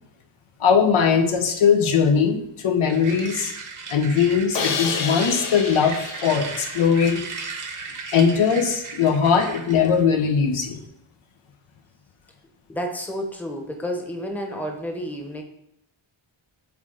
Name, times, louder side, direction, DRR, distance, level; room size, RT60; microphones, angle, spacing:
voice 1, 0.6-3.5 3.9-7.3 8.1-10.8, left 6 dB, 85° left, 5 dB, 0.9 m, -20 dB
sound 1, 2.9-10.0, right 5 dB, 40° right, 0.8 m, -36 dB
Crash cymbal, 4.5-7.6, left 6 dB, 60° left, 0.7 m, -30 dB
voice 2, 12.7-15.4, equal, 5° left, 3 dB, 0.8 m, -30 dB
8.0 x 3.2 x 3.8 m, 0.80 s
wide cardioid pair, 150°, 49 cm